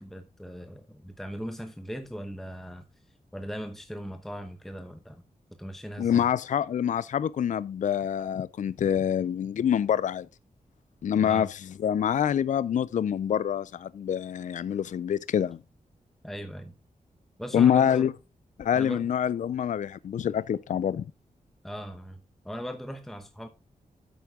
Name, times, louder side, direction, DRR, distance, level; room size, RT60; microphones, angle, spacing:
voice 1, 0.0-2.8 3.3-5.2 5.6-6.3 11.2-11.5 16.2-16.7 17.4-18.1 18.7-19.1 21.6-23.5, equal, ahead, 0.9 m, -39 dB
voice 2, 6.0-10.3 11.0-15.6 17.5-18.1 18.6-21.1, left 9 dB, 60° left, 0.4 m, -26 dB
9.2 x 8.2 x 3.6 m
wide cardioid pair, 125°, 14 cm